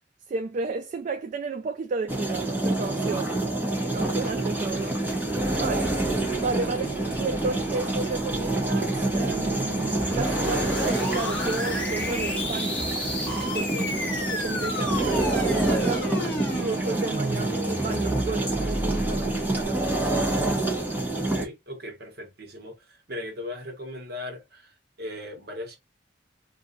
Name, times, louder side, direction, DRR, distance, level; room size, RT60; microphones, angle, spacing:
voice 1, 0.3-3.3 3.8-5.0 5.5-6.0 6.4-12.9 13.4-13.7 14.3-16.3 16.6-20.6, right 3 dB, 45° right, 0.3 m, -32 dB
sound 1, 2.1-21.4, right 2 dB, 10° right, 1.1 m, -27 dB
sound 2, 3.7-19.7, left 2 dB, 50° left, 1.5 m, -46 dB
sound 3, 10.0-19.6, left 1 dB, 5° left, 1.2 m, -32 dB
voice 2, 13.6-14.0 21.1-25.8, left 1 dB, 60° right, 1.2 m, -38 dB
2.6 x 2.5 x 3.9 m
head